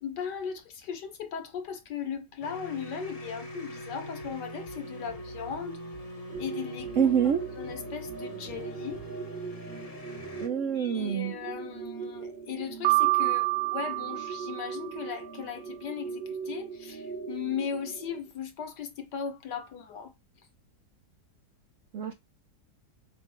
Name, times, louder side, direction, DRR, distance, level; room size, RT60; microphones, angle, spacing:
voice 1, 0.0-5.8 6.4-7.1 7.6-9.0 10.8-20.1, left 7 dB, 75° left, 1.8 m, -37 dB
sound 1, 2.4-10.5, equal, 30° left, 0.8 m, -42 dB
sound 2, 6.3-18.2, right 5 dB, 35° right, 1.1 m, -40 dB
voice 2, 7.0-7.4 10.4-11.3 21.9-22.1, right 8 dB, 65° right, 0.8 m, -26 dB
Piano, 12.8-15.0, right 24 dB, 90° right, 1.8 m, -27 dB
7.2 x 2.5 x 5.6 m
omnidirectional pair, 1.9 m